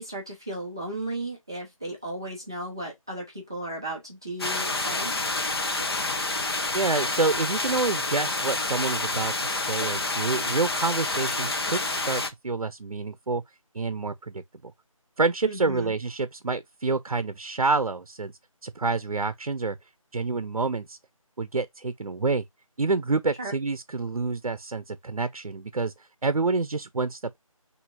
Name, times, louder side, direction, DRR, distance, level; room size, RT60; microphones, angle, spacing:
voice 1, 0.0-5.1 15.4-15.9 23.4-23.5, right 1 dB, 5° right, 0.5 m, -35 dB
sound 1, 4.4-12.3, left 2 dB, 45° left, 1.0 m, -28 dB
voice 2, 6.7-13.4 13.7-14.7 15.2-18.3 18.6-19.8 20.1-21.0 21.4-22.4 22.8-25.9 26.2-27.4, right 3 dB, 90° right, 0.8 m, -28 dB
6.3 x 2.8 x 2.4 m
figure-of-eight pair, 170°, 18 cm